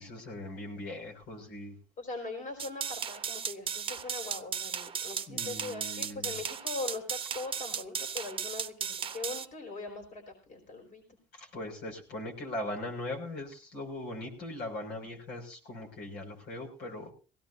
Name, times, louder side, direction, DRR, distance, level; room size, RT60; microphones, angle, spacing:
voice 1, 0.0-1.7 5.3-6.3 11.3-17.1, left 1 dB, 85° left, 1 dB, 6.0 m, -40 dB
voice 2, 2.0-11.0, left 3 dB, 50° left, 3 dB, 4.2 m, -41 dB
sound 1, 2.6-9.4, right 7 dB, 30° right, 0.9 m, -36 dB
19.5 x 17.0 x 2.7 m, 0.36 s
cardioid pair, 110°, 17 cm